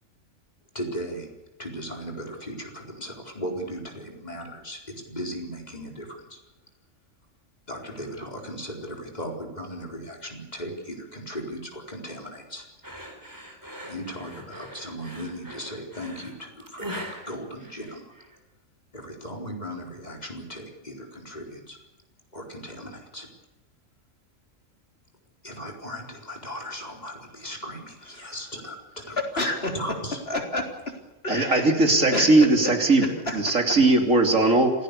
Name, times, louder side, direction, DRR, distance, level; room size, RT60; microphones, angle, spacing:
voice 1, 0.7-1.3 1.6-6.4 7.7-12.7 13.8-18.1 18.9-21.8 22.3-23.3 25.4-29.5 29.7-30.2, equal, 30° left, 1 dB, 4.6 m, -37 dB
sound 1, 12.8-18.4, equal, 15° right, 4.2 m, -41 dB
voice 2, 29.2-30.0 30.3-31.7 32.1-32.7 33.0-33.8, left 2 dB, 45° left, 3 dB, 3.8 m, -30 dB
voice 3, 31.3-33.1 33.3-34.7, right 2 dB, 70° right, 4 dB, 3.6 m, -19 dB
27.0 x 17.5 x 6.9 m, 1.0 s
omnidirectional pair, 1.4 m